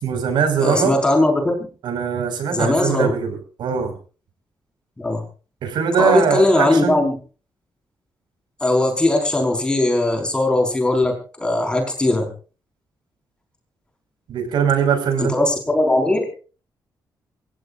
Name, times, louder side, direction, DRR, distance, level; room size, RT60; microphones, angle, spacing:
voice 1, 0.0-1.0 1.8-3.9 5.6-7.0 14.3-15.4, right 7 dB, 85° right, 7 dB, 5.5 m, -21 dB
voice 2, 0.6-1.6 2.5-3.1 5.0-5.2 6.0-7.2 8.6-12.3 15.2-16.2, left 1 dB, 10° left, 2 dB, 5.1 m, -19 dB
27.5 x 15.5 x 2.6 m, 0.37 s
wide cardioid pair, 175°, 8 cm